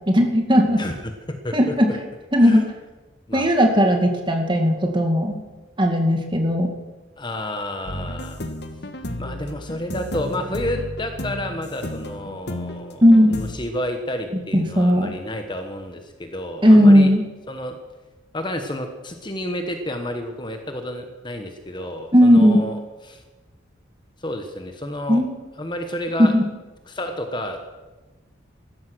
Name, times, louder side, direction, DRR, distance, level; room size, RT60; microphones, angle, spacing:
voice 1, 0.1-0.8 1.5-1.9 2.3-2.6 3.3-5.4 5.8-6.7 13.0-13.4 14.5-15.1 16.6-17.2 22.1-22.6 25.1-25.3 26.2-26.4, equal, 25° right, 3 dB, 2.2 m, -16 dB
voice 2, 0.8-1.1 1.4-1.7 2.4-2.6 3.3-3.7 7.2-8.4 9.2-13.0 13.3-17.1 17.5-17.7 18.3-22.8 23.0-23.2 24.2-25.2 25.6-26.3 26.9-27.6, left 1 dB, 25° left, 5 dB, 1.2 m, -30 dB
sound 1, 7.9-13.5, left 1 dB, 55° left, 1.5 m, -32 dB
16.0 x 13.0 x 6.3 m, 1.2 s
head